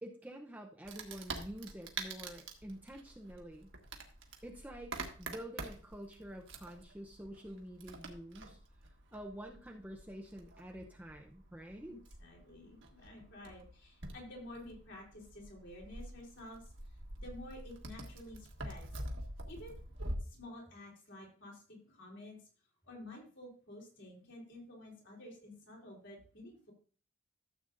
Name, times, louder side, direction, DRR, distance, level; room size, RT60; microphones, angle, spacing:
voice 1, 0.0-3.7 4.4-8.6 9.1-12.0, equal, 10° right, 1 dB, 0.6 m, -48 dB
Wood, 0.8-20.2, right 2 dB, 65° right, 1.5 m, -47 dB
voice 2, 11.9-16.6 17.2-18.9 19.5-19.8 20.2-22.4 22.8-26.7, left 1 dB, 60° left, -1 dB, 3.6 m, -51 dB
13.5 x 7.9 x 2.6 m, 0.42 s
head